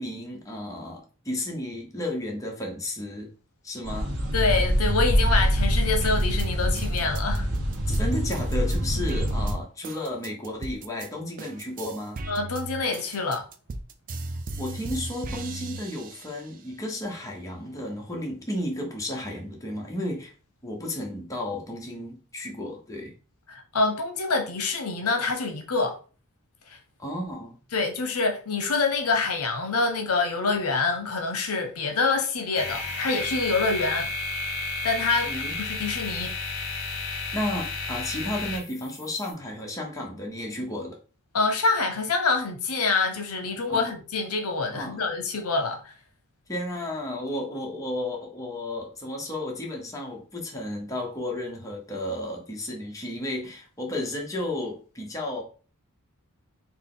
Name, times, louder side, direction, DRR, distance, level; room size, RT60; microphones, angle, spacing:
voice 1, 0.0-3.3 3.6-4.1 7.9-12.2 14.6-20.3 20.6-23.1 27.0-27.6 35.2-35.5 37.3-41.0 43.7-43.9 44.7-45.0 46.5-55.4, left 1 dB, 15° left, 0.8 m, -33 dB
sound 1, 3.8-9.5, equal, 90° right, 1.0 m, -25 dB
voice 2, 4.3-7.5 12.3-13.5 23.5-26.0 26.7-26.8 27.7-34.1 34.8-36.4 41.3-45.9, left 3 dB, 80° left, 0.7 m, -26 dB
sound 2, 6.0-11.1 11.4-16.6 17.0-18.0, right 2 dB, 40° right, 0.3 m, -37 dB
sound 3, 32.6-39.3, left 3 dB, 60° left, 1.1 m, -32 dB
4.0 x 2.1 x 3.7 m
head